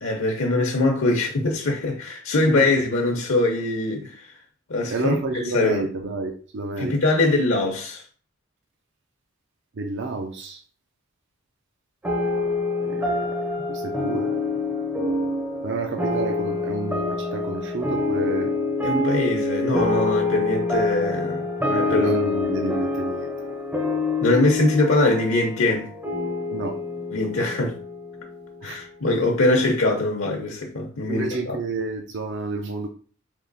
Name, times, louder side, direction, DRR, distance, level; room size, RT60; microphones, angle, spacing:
voice 1, 0.0-4.3 4.7-5.9 6.8-8.0 12.9-13.0 18.8-22.1 24.2-25.9 27.1-27.8 28.6-31.6, left 2 dB, 65° left, 0.8 m, -22 dB
voice 2, 4.9-6.9 9.8-10.6 12.8-13.2 13.7-14.4 15.6-18.5 21.9-23.3 26.5-26.8 28.6-28.8 31.1-32.9, right 3 dB, 55° right, 0.5 m, -29 dB
sound 1, 12.0-28.8, left 3 dB, 10° right, 0.6 m, -26 dB
3.5 x 2.9 x 4.0 m
head